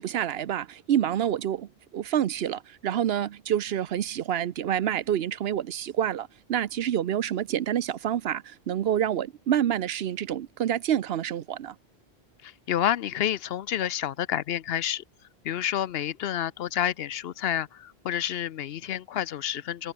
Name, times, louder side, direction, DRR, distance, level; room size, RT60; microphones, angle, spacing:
voice 1, 0.0-11.7, right 10 dB, 70° right, 0.9 m, -28 dB
voice 2, 12.4-15.0 15.4-19.9, left 10 dB, 70° left, 0.8 m, -29 dB
omnidirectional pair, 1.1 m